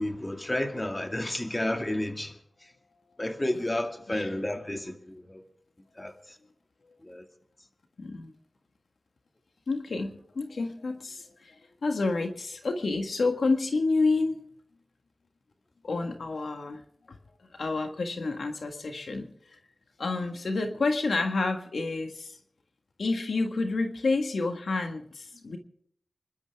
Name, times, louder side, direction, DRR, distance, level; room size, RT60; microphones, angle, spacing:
voice 1, 0.0-2.3 3.2-5.4 6.0-6.1 7.0-7.2, left 1 dB, 25° left, 2.3 m, -31 dB
voice 2, 8.0-8.3 9.7-14.4 15.8-16.8 17.1-17.2 17.6-19.3 20.0-22.3 23.0-25.6, left 3 dB, 80° left, 1.7 m, -29 dB
27.5 x 12.0 x 3.6 m
cardioid pair, 50°, 0 cm